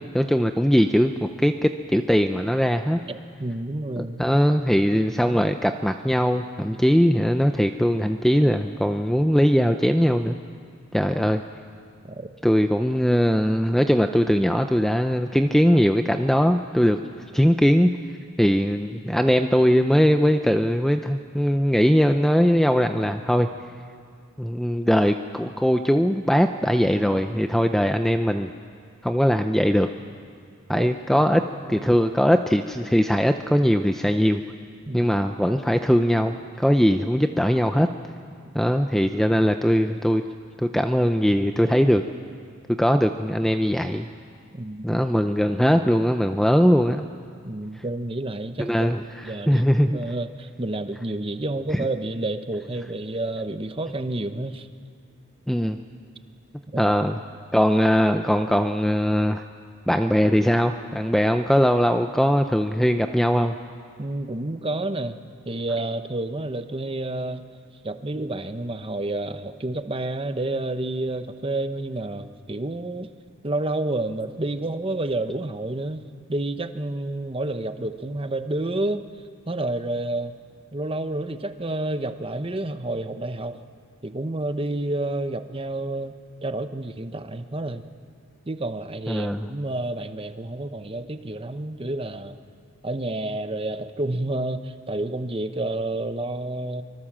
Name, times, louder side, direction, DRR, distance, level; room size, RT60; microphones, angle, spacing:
voice 1, 0.1-3.0 4.0-10.4 10.9-11.4 12.4-17.0 17.3-17.9 18.4-23.5 24.4-28.5 29.0-29.9 30.7-31.4 31.7-34.4 34.9-37.9 38.5-40.2 40.6-42.0 42.8-44.1 44.8-47.1 48.6-49.0 49.5-50.0 55.5-55.8 56.8-57.2 57.5-59.4 59.9-63.6 89.1-89.5, equal, ahead, 7 dB, 0.5 m, -20 dB
voice 2, 3.1-4.4 5.2-5.5 11.2-11.3 12.0-12.3 30.7-30.9 31.4-31.9 34.9-35.1 44.5-45.1 47.4-48.9 49.2-54.7 56.7-56.9 64.0-65.2 65.4-67.4 67.8-73.1 73.4-76.0 76.3-79.0 79.5-80.3 80.7-83.6 84.0-87.8 88.5-92.4 92.8-96.8, right 2 dB, 25° right, 9 dB, 0.9 m, -30 dB
24.5 x 23.5 x 7.4 m, 2.3 s
head